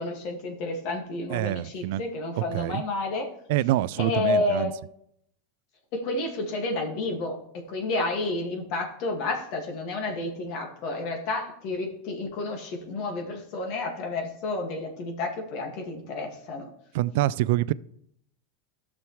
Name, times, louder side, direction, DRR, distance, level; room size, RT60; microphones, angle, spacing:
voice 1, 0.0-3.3 4.0-4.7 5.9-16.7, left 2 dB, 60° left, 2 dB, 1.8 m, -30 dB
voice 2, 1.3-2.0 2.4-2.8 3.5-4.7 16.9-17.7, right 15 dB, 70° right, 19 dB, 0.3 m, -26 dB
13.0 x 6.2 x 3.1 m, 0.72 s
supercardioid pair, 115°, 0 cm